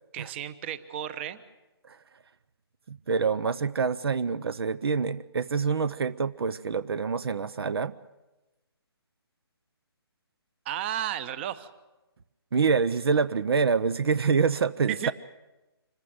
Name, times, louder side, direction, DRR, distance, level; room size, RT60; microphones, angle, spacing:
voice 1, 0.1-1.4 10.6-11.7 14.9-15.1, right 10 dB, 25° right, 15 dB, 1.0 m, -33 dB
voice 2, 2.9-7.9 12.5-15.1, right 5 dB, 65° right, 17 dB, 0.8 m, -26 dB
26.0 x 15.5 x 9.5 m, 1.1 s
hypercardioid pair, 155°, 14 cm